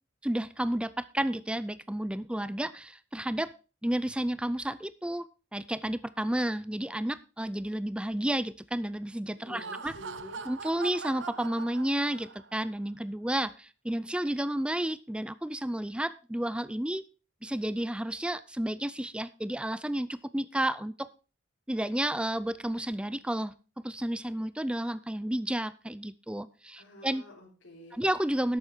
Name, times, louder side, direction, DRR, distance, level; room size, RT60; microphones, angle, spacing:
voice 1, 0.2-3.5 3.8-5.3 5.5-9.9 10.5-17.0 17.4-21.1 21.7-23.5 23.8-27.2 27.9-28.6, right 1 dB, 5° right, 16 dB, 0.4 m, -31 dB
voice 2, 9.4-10.5 26.8-28.0, left 1 dB, 85° left, -5 dB, 3.6 m, -48 dB
Laughter, 9.4-12.6, right 5 dB, 65° right, 0.7 m, -42 dB
11.5 x 8.2 x 4.5 m, 0.34 s
head